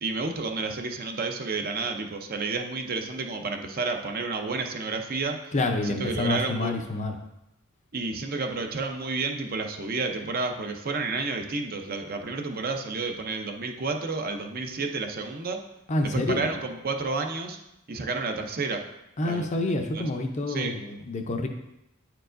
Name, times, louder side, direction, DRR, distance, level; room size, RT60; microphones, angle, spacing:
voice 1, 0.0-5.5 5.8-6.7 7.9-15.6 16.0-17.6 17.9-18.8 19.2-19.5 19.9-20.0 20.5-20.7, right 3 dB, 45° right, 4 dB, 0.6 m, -30 dB
voice 2, 5.5-7.2 15.9-16.5 19.2-21.5, left 2 dB, 35° left, 5 dB, 0.5 m, -28 dB
9.0 x 4.6 x 2.5 m, 0.88 s
head